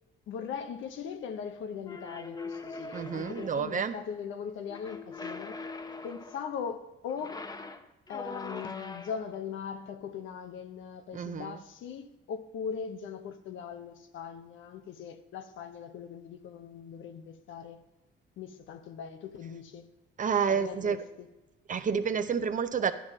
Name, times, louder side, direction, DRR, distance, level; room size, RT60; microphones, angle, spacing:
voice 1, 0.3-5.6 6.0-7.5 8.1-17.8 18.4-19.9 20.5-21.0, left 7 dB, 75° left, 0.8 m, -40 dB
sound 1, 1.8-3.7 4.7-6.5 7.1-9.4, left 3 dB, 20° left, 0.7 m, -42 dB
voice 2, 2.9-3.9 11.1-11.6 20.2-21.0 21.7-22.9, right 6 dB, 40° right, 0.7 m, -29 dB
11.5 x 5.8 x 5.4 m
cardioid pair, 90°, 20 cm